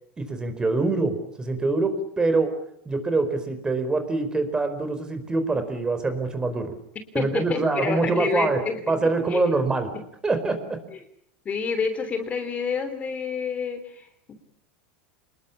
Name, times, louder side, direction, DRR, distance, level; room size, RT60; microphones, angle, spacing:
voice 1, 0.2-2.5 2.8-6.7 7.1-8.6 8.9-9.9 10.2-10.8, right 3 dB, 15° right, 9 dB, 4.6 m, -24 dB
voice 2, 7.1-9.0 9.3-9.4 10.9-11.0 11.4-14.3, left 5 dB, 25° left, 9 dB, 3.4 m, -29 dB
27.0 x 21.0 x 8.5 m, 0.70 s
supercardioid pair, 135°, 6 cm